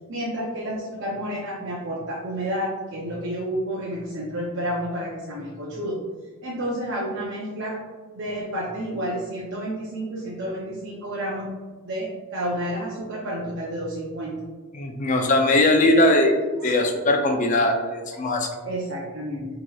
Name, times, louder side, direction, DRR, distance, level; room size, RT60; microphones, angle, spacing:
voice 1, 0.1-6.0 6.4-7.7 8.1-11.5 11.8-14.3 16.6-16.7 18.1-18.3 18.6-19.5, equal, 55° right, -5 dB, 0.6 m, -30 dB
voice 2, 14.7-16.3 16.6-18.5, left 1 dB, 35° left, 3 dB, 0.4 m, -20 dB
4.8 x 2.8 x 2.3 m, 1.4 s
head